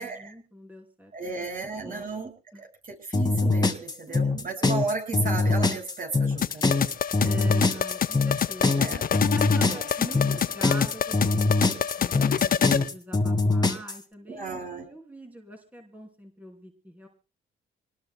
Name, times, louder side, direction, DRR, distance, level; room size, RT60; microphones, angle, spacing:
voice 1, 0.0-2.2 2.5-2.6 4.1-4.2 7.2-8.9 9.3-17.1, equal, 10° right, 2 dB, 3.0 m, -43 dB
voice 2, 1.1-6.7 7.2-7.5 8.8-9.1 9.6-9.8 10.2-10.4 14.3-14.9, right 3 dB, 45° right, 3 dB, 6.8 m, -34 dB
sound 1, 3.1-14.0, left 3 dB, 20° left, 2.0 m, -23 dB
sound 2, 6.4-12.9, left 8 dB, 45° left, 0.7 m, -27 dB
26.5 x 19.5 x 2.3 m, 0.34 s
cardioid pair, 90°, 20 cm